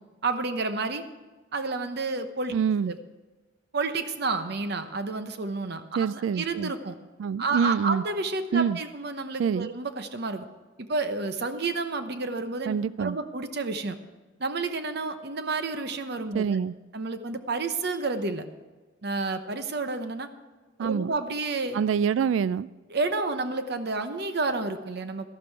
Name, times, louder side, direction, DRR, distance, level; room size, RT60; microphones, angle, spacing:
voice 1, 0.2-1.0 1.5-2.5 2.9-3.0 3.7-7.0 7.4-10.5 10.8-14.0 14.4-16.6 16.9-18.4 19.0-20.3 20.8-21.8 22.9-25.3, right 3 dB, 60° right, 9 dB, 0.9 m, -30 dB
voice 2, 2.5-2.9 6.0-6.7 7.2-8.0 8.5-8.8 9.4-9.7 12.7-13.2 16.3-16.7 20.8-21.1 21.7-22.7, right 7 dB, 85° right, 19 dB, 0.3 m, -26 dB
12.5 x 12.0 x 4.6 m, 1.2 s
head